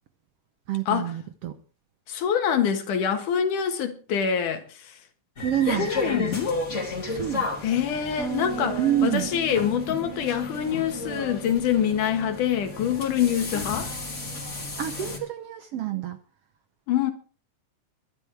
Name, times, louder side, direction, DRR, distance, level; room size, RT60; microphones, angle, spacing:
voice 1, 0.7-1.6 5.4-5.9 7.1-7.5 8.8-9.3 14.8-16.2, right 11 dB, 65° right, 1.5 m, -27 dB
voice 2, 2.1-5.0 5.8-6.5 7.6-13.9 16.9-17.1, left 8 dB, 80° left, 3.1 m, -25 dB
sound 1, 5.4-15.2, left 3 dB, 25° left, 2.7 m, -33 dB
Bass guitar, 8.2-14.4, right 7 dB, ahead, 1.6 m, -39 dB
23.0 x 11.5 x 3.4 m
omnidirectional pair, 3.6 m